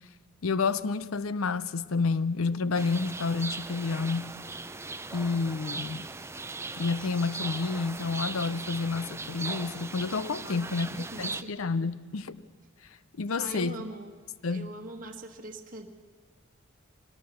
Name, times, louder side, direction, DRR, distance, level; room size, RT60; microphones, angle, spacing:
voice 1, 0.4-4.4 5.1-6.1 6.8-12.3 13.2-13.8 14.4-14.7, left 4 dB, 90° left, 0.7 m, -29 dB
sound 1, 2.7-11.4, right 3 dB, 15° right, 0.6 m, -38 dB
voice 2, 10.4-11.6 13.4-14.2 14.5-15.9, right 1 dB, 40° right, 1.5 m, -42 dB
24.5 x 20.0 x 7.1 m
head